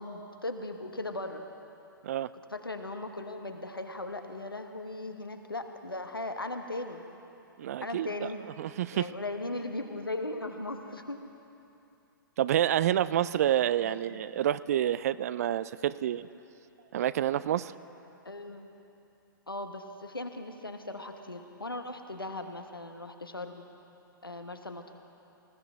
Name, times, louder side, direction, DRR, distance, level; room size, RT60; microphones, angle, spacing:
voice 1, 0.0-1.4 2.5-7.0 7.8-8.4 8.9-11.2 13.8-14.2 18.2-18.7 19.5-23.6 24.2-24.9, left 2 dB, 85° left, 6 dB, 1.1 m, -38 dB
voice 2, 7.6-8.3 8.6-9.1 12.4-16.3 16.9-17.7, right 11 dB, 45° right, 16 dB, 0.3 m, -28 dB
19.5 x 16.0 x 3.5 m, 2.9 s
figure-of-eight pair, 115°, 12 cm